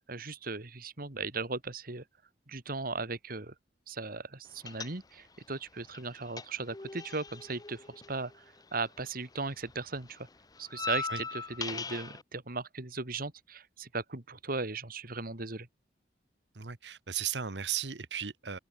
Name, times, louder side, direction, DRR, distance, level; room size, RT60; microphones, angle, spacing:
voice 1, 0.0-2.0 2.5-3.5 3.9-8.4 8.7-10.3 10.6-15.7, right 3 dB, 55° right, 2.5 m, -37 dB
sound 1, 4.7-5.4 5.7-9.1 9.3-12.2, left 5 dB, 20° left, 0.7 m, -40 dB
voice 2, 16.5-18.6, right 9 dB, 80° right, 1.3 m, -35 dB
head